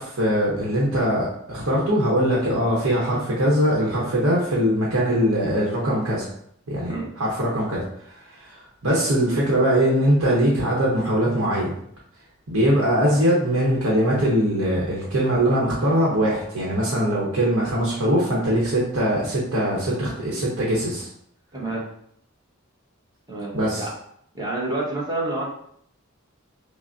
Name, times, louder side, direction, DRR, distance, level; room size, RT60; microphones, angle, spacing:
voice 1, 0.0-6.3 6.7-7.8 8.3-8.6 8.8-11.7 12.5-21.1 23.5-23.9, equal, 70° right, -5 dB, 0.9 m, -21 dB
voice 2, 21.5-21.8 23.3-23.5 23.8-23.9 24.3-25.5, right 2 dB, 20° right, -5 dB, 1.0 m, -28 dB
5.7 x 2.0 x 2.6 m, 0.67 s
head